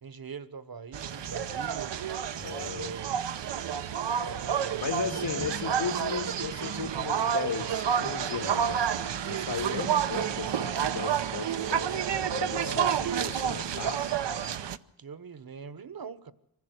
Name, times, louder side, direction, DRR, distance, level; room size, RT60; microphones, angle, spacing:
voice 1, 0.0-1.9 2.7-3.3 4.2-5.5 5.8-6.0 12.5-13.7 15.0-16.3, right 6 dB, 55° right, 1.3 m, -42 dB
sound 1, 0.9-14.8, right 8 dB, 80° right, 0.8 m, -30 dB
voice 2, 2.4-3.0 4.8-14.1, left 6 dB, 80° left, 2.2 m, -36 dB
24.0 x 16.0 x 8.0 m
cardioid pair, 55°, 42 cm